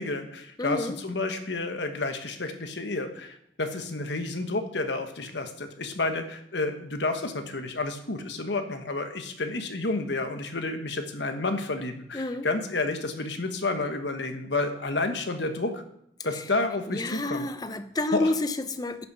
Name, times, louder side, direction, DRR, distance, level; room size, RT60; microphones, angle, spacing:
voice 1, 0.0-15.8 16.2-17.5 18.1-18.3, left 2 dB, 80° left, 6 dB, 1.3 m, -30 dB
voice 2, 0.6-1.0 12.1-12.5 16.3-16.4 16.9-19.1, left 2 dB, 20° left, 11 dB, 0.6 m, -29 dB
10.5 x 7.1 x 6.0 m, 0.73 s
head